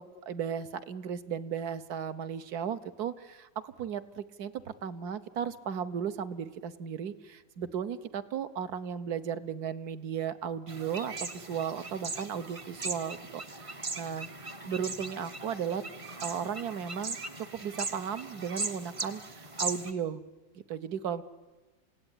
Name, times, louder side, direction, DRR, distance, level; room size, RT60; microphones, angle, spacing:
voice 1, 0.0-14.3 14.6-15.8 16.2-20.2 20.7-21.2, right 8 dB, 60° right, 12 dB, 1.4 m, -35 dB
sound 1, 10.7-19.9, right 3 dB, 25° right, 0.7 m, -39 dB
28.0 x 17.0 x 10.0 m, 1.2 s
omnidirectional pair, 2.0 m